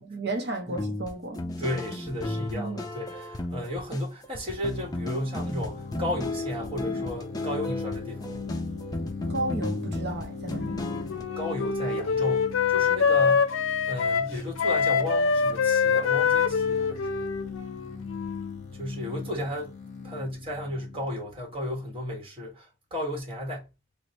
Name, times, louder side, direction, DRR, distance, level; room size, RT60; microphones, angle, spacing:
voice 1, 0.1-1.4 2.5-2.8 9.3-10.8 13.3-13.4, right 2 dB, 55° right, 0.6 m, -33 dB
sound 1, 0.7-11.2, left 1 dB, 20° left, 0.4 m, -34 dB
voice 2, 1.6-8.4 11.4-13.5 13.9-17.3 18.7-19.8 20.0-23.7, left 1 dB, 25° right, 1.1 m, -34 dB
sound 2, 4.4-22.0, left 5 dB, 40° left, 0.9 m, -40 dB
Wind instrument woodwind instrument, 10.6-18.6, left 6 dB, 80° left, 0.5 m, -25 dB
3.0 x 2.1 x 4.0 m
head